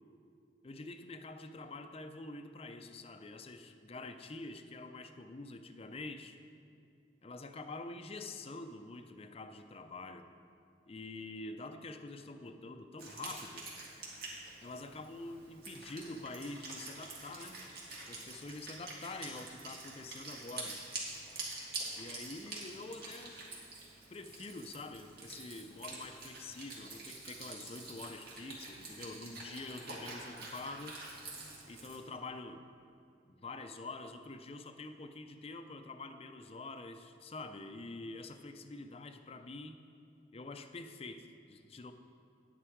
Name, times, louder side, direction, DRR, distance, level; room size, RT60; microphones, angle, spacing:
voice 1, 0.6-6.4 7.2-10.3 10.9-13.7 14.6-17.6 18.1-20.8 22.0-23.4 24.1-31.0 31.7-32.6 33.3-39.8 40.3-41.9, left 2 dB, 30° left, 8 dB, 0.5 m, -46 dB
Wind instrument woodwind instrument, 13.0-32.0, right 2 dB, 55° right, 2.1 m, -47 dB
9.8 x 9.5 x 4.6 m, 2.4 s
head